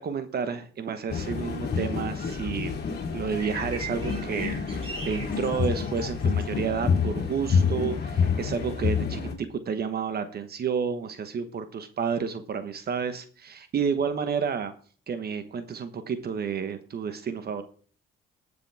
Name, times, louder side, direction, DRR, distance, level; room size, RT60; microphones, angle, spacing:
voice 1, 0.0-2.8 3.1-14.7 15.1-17.6, right 6 dB, 50° right, 9 dB, 1.2 m, -30 dB
sound 1, 1.1-9.3, left 6 dB, 55° left, 2.3 m, -28 dB
sound 2, 2.3-7.3, right 3 dB, 25° right, 4.2 m, -42 dB
19.0 x 6.8 x 3.5 m, 0.42 s
cardioid pair, 90°, 20 cm